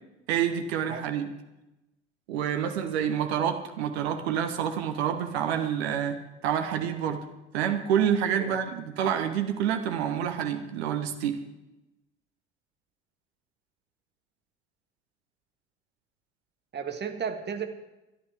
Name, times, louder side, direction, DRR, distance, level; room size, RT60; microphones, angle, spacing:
voice 1, 0.3-1.3 2.3-7.2 7.5-11.4, right 9 dB, 65° right, 6 dB, 1.3 m, -28 dB
voice 2, 16.7-17.7, right 7 dB, 30° right, 6 dB, 1.7 m, -33 dB
23.5 x 11.0 x 3.6 m, 0.96 s
figure-of-eight pair, 60°, 34 cm